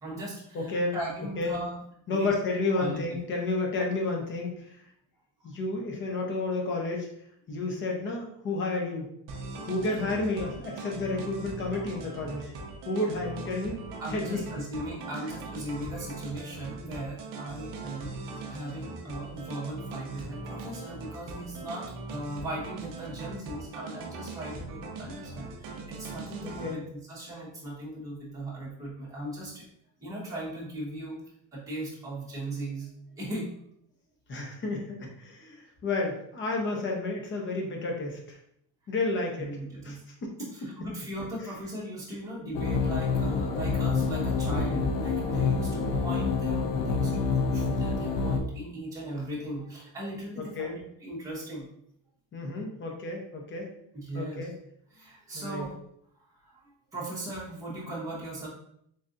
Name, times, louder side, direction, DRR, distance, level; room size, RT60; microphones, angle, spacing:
voice 1, 0.0-1.8 2.1-2.3 2.7-3.0 14.0-29.6 30.0-31.2 31.5-32.9 33.2-33.5 35.4-35.5 39.4-40.0 40.5-51.7 53.9-54.4 54.9-55.7 56.2-58.5, right 1 dB, 5° right, -8 dB, 1.0 m, -38 dB
voice 2, 0.5-1.0 1.4-1.5 2.1-4.8 5.4-7.1 7.5-9.1 9.7-12.5 12.9-13.8 14.1-14.4 26.4-26.9 34.3-35.6 35.8-38.4 38.9-39.5 39.8-40.7 50.4-50.8 52.3-53.7 54.1-54.5 55.3-55.6, left 2 dB, 25° left, 0 dB, 0.6 m, -31 dB
sound 1, 9.3-26.7, right 3 dB, 45° right, 0.5 m, -40 dB
sound 2, 42.5-48.4, left 4 dB, 85° left, 0.6 m, -27 dB
3.8 x 3.2 x 2.5 m, 0.73 s
cardioid pair, 165°, 48 cm